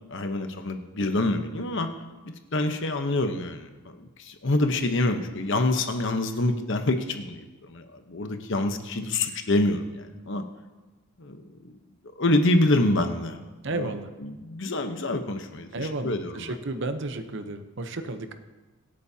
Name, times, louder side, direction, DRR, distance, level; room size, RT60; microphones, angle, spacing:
voice 1, 0.1-1.9 2.2-10.4 11.2-11.8 12.2-13.4 13.7-13.9 14.2-16.5, left 2 dB, 55° left, 7 dB, 1.0 m, -26 dB
voice 2, 13.6-14.1 15.7-18.3, right 2 dB, 55° right, 9 dB, 0.8 m, -32 dB
25.0 x 8.4 x 2.8 m, 1.2 s
head